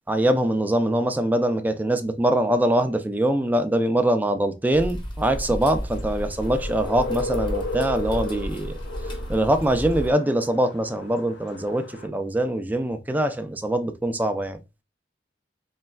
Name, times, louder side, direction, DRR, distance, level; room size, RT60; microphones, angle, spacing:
voice 1, 0.1-8.8 9.3-14.6, right 1 dB, 10° right, 0.4 m, -23 dB
sound 1, 4.7-10.1, equal, 25° left, 0.9 m, -32 dB
sound 2, 5.9-12.1, left 3 dB, 80° left, 0.7 m, -35 dB
4.2 x 3.1 x 2.3 m
head